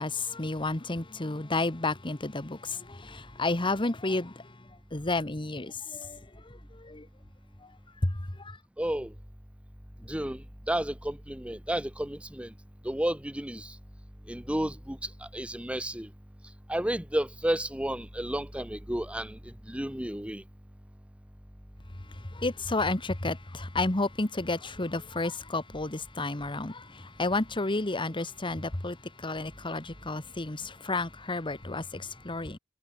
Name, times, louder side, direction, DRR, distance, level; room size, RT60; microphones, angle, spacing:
voice 1, 0.0-4.4 4.9-6.2 6.8-7.1 8.0-8.6 22.3-32.6, left 2 dB, 25° left, 1.4 m, -31 dB
voice 2, 8.8-9.1 10.1-12.5 12.8-13.7 14.3-16.1 16.7-20.4, right 1 dB, 5° right, 1.4 m, -32 dB
head